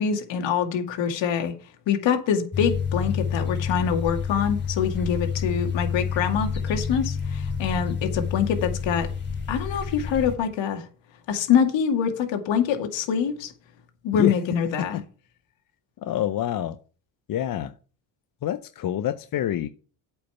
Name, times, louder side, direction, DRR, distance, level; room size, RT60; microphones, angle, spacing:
voice 1, 0.0-1.5 1.9-9.1 9.5-10.9 11.3-13.5 14.0-15.0, left 7 dB, 65° left, 2.4 m, -25 dB
sound 1, 2.5-10.4, left 6 dB, 20° left, 3.1 m, -29 dB
voice 2, 16.0-16.8 17.3-17.7 18.4-19.7, left 11 dB, 45° left, 0.7 m, -27 dB
8.5 x 5.5 x 7.0 m
supercardioid pair, 85°, 48 cm